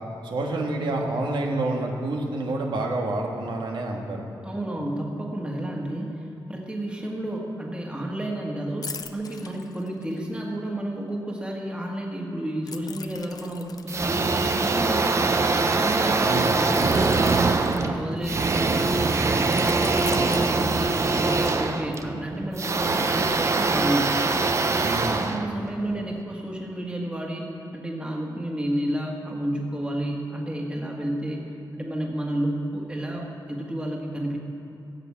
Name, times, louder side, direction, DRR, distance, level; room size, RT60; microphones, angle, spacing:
voice 1, 0.2-4.3 16.2-16.6 24.8-25.3, right 2 dB, 90° right, 0 dB, 1.6 m, -28 dB
voice 2, 4.4-15.4 15.8-24.2 25.0-31.5 31.7-34.4, right 1 dB, 15° right, -1 dB, 1.8 m, -31 dB
sound 1, 8.8-10.4 12.7-15.4 16.6-18.4 19.5-21.3 21.7-21.9, left 6 dB, 55° left, 0.6 m, -41 dB
sound 2, 13.9-26.1, right 3 dB, 40° right, 0.7 m, -23 dB
16.5 x 8.1 x 7.3 m, 2.7 s
wide cardioid pair, 160°, 8 cm